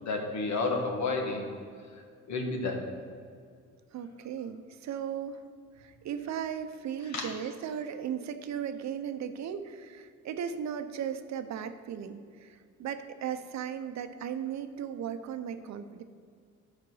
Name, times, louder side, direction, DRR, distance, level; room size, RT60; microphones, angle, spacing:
voice 1, 0.0-1.5 2.3-2.8 7.1-7.3, left 3 dB, 65° left, 2 dB, 1.6 m, -31 dB
voice 2, 3.9-5.4 5.8-16.0, right 8 dB, 65° right, 9 dB, 0.7 m, -36 dB
8.3 x 5.1 x 6.3 m, 2.2 s
cardioid pair, 90°, 30 cm